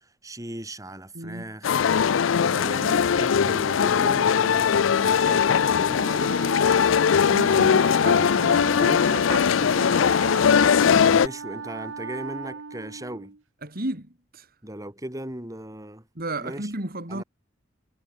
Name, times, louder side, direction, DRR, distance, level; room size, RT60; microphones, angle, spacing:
voice 1, 0.0-1.7 2.4-6.0 7.2-7.8 8.8-9.1 10.7-13.4 14.6-16.1 16.4-16.7 17.1-17.2, right 1 dB, 20° right, 5.4 m, -37 dB
voice 2, 1.1-1.5 7.2-10.0 10.9-11.0 13.6-14.5 16.2-17.2, right 2 dB, 50° right, 3.7 m, -34 dB
sound 1, 1.6-11.3, left 7 dB, 80° left, 0.4 m, -20 dB
Wind instrument woodwind instrument, 5.9-13.4, right 4 dB, 90° right, 1.1 m, -37 dB
head